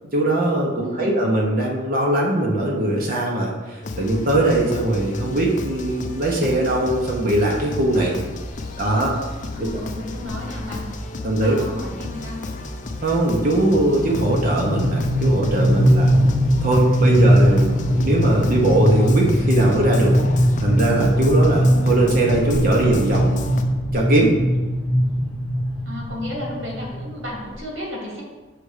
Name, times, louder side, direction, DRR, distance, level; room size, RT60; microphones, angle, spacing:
voice 1, 0.1-8.2 8.8-9.2 9.6-9.7 11.2-11.6 13.0-16.1 16.6-20.2 20.6-23.4 23.9-24.3, right 2 dB, 50° right, -1 dB, 0.9 m, -20 dB
sound 1, 3.8-23.6, left 2 dB, 40° left, 0.5 m, -33 dB
sound 2, 8.5-8.8 9.6-9.8 10.2-10.3 10.6-10.9 11.3-27.6, equal, 25° left, 1.0 m, -20 dB
voice 2, 9.5-10.9 11.1-12.5 25.9-28.2, left 1 dB, 75° right, -2 dB, 2.0 m, -33 dB
6.5 x 3.4 x 4.9 m, 1.2 s
head